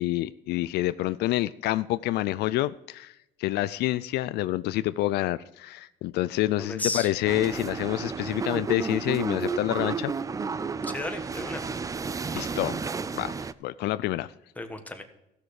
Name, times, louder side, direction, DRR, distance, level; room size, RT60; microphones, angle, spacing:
voice 1, 0.0-10.1 12.3-13.3 13.6-14.3, left 16 dB, 75° left, 16 dB, 0.4 m, -28 dB
voice 2, 6.6-7.1 10.8-11.8 14.6-15.0, left 2 dB, 10° left, 5 dB, 1.4 m, -34 dB
sound 1, 7.3-13.5, right 4 dB, 20° right, 0.4 m, -32 dB
15.0 x 6.5 x 4.8 m, 0.87 s
cardioid pair, 110°, 17 cm